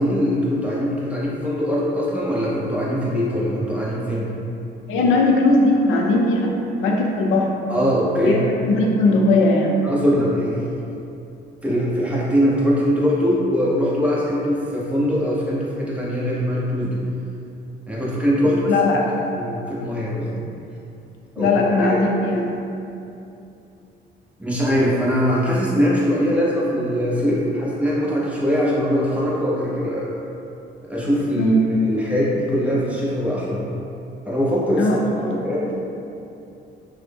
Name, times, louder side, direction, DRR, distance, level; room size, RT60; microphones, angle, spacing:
voice 1, 0.0-4.3 7.7-8.4 9.8-10.7 11.6-17.0 17.9-18.7 19.3-20.3 21.4-21.5 21.8-22.0 24.4-30.1 30.9-31.5 31.8-33.6 34.3-34.9 35.2-35.7, equal, 5° right, -6 dB, 0.7 m, -22 dB
voice 2, 4.9-7.5 8.1-9.8 18.6-19.0 21.4-22.5 31.3-31.6 34.8-35.0 35.3-35.4, left 2 dB, 90° left, 0 dB, 0.5 m, -18 dB
3.2 x 2.1 x 3.4 m, 2.8 s
cardioid pair, 90°, 20 cm